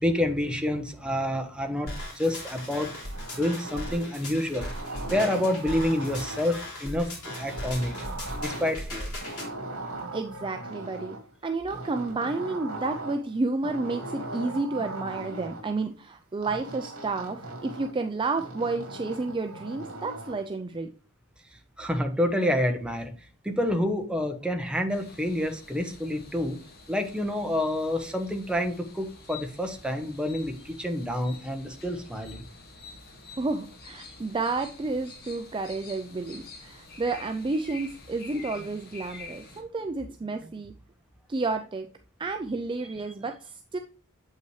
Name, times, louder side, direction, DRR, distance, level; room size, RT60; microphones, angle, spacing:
voice 1, 0.0-2.9 3.4-4.8 5.1-7.9 8.4-9.1 21.8-23.1 23.4-26.6 26.9-32.4, left 1 dB, 5° right, 4 dB, 0.9 m, -28 dB
sound 1, 1.9-9.5, left 1 dB, 75° left, 3.0 m, -38 dB
sound 2, 2.6-4.2 4.5-6.6 7.3-8.9 9.2-11.2 11.7-13.3 13.6-15.6 16.4-18.0 18.4-20.4, right 2 dB, 70° right, 2.2 m, -39 dB
voice 2, 10.1-11.2 11.4-20.9 33.4-40.7 41.3-41.9 42.2-43.8, right 3 dB, 20° right, 6 dB, 0.4 m, -31 dB
sound 3, 24.9-39.6, left 3 dB, 45° left, 1.8 m, -48 dB
7.9 x 5.6 x 3.1 m, 0.42 s
head